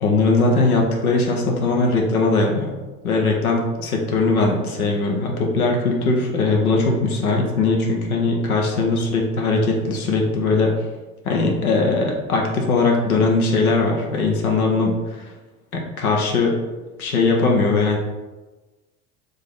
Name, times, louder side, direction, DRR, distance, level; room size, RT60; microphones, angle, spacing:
voice 1, 0.0-2.7 3.0-10.7 11.2-15.3 15.7-16.6 17.0-18.0, left 3 dB, 70° left, 0 dB, 0.8 m, -20 dB
3.4 x 2.7 x 3.5 m, 1.2 s
figure-of-eight pair, 75°, 44 cm